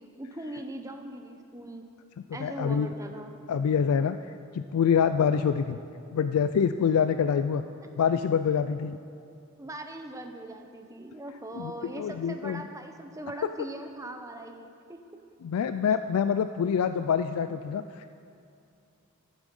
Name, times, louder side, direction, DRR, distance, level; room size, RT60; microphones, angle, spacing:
voice 1, 0.0-1.8 2.3-3.3 9.6-15.0, right 1 dB, 15° right, 5 dB, 0.7 m, -40 dB
voice 2, 2.4-2.9 3.5-4.2 4.5-5.8 6.1-7.6 8.0-9.0 11.5-12.6 15.4-18.1, left 7 dB, 90° left, 10 dB, 0.3 m, -26 dB
11.5 x 8.1 x 5.4 m, 2.5 s
head